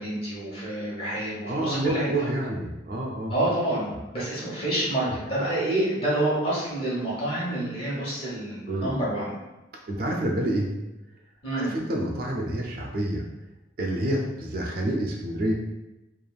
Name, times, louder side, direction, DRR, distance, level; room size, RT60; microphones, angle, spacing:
voice 1, 0.0-2.3 3.3-9.4 11.4-11.7, right 1 dB, 30° left, -6 dB, 1.0 m, -28 dB
voice 2, 1.5-3.3 8.7-8.9 9.9-10.7 11.5-13.2 13.8-15.5, right 1 dB, 50° right, 0 dB, 0.4 m, -28 dB
3.3 x 2.4 x 2.3 m, 0.99 s
head